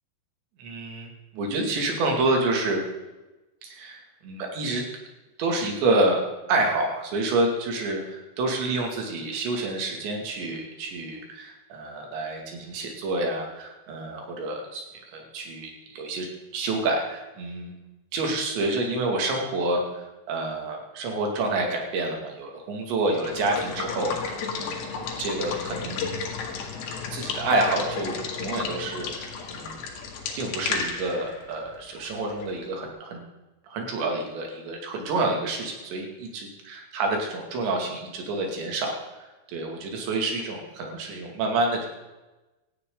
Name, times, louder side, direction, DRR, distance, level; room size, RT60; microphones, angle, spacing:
voice 1, 0.6-2.8 3.6-4.8 5.4-6.2 6.5-14.8 15.1-16.3 16.5-17.7 18.1-24.8 25.2-26.0 27.1-29.8 30.4-33.3 33.7-41.9, right 2 dB, 85° right, 1 dB, 4.9 m, -28 dB
Water / Water tap faucet / Liquid, 23.0-32.7, left 5 dB, 80° left, 4.1 m, -33 dB
18.5 x 14.0 x 4.0 m, 1.1 s
omnidirectional pair, 5.0 m